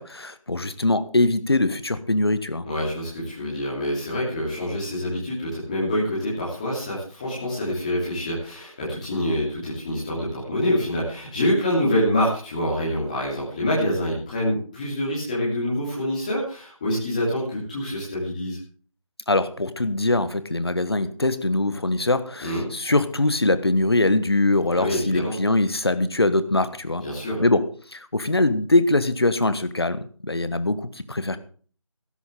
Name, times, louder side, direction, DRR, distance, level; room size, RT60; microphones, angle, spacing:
voice 1, 0.0-2.7 19.3-27.0 27.4-27.6 27.9-31.4, left 2 dB, 45° left, 13 dB, 1.3 m, -22 dB
voice 2, 2.6-18.6 22.4-22.7 24.7-25.3 27.0-27.4, left 1 dB, 15° left, -7 dB, 2.9 m, -26 dB
15.5 x 13.5 x 3.7 m, 0.43 s
figure-of-eight pair, 165°, 18 cm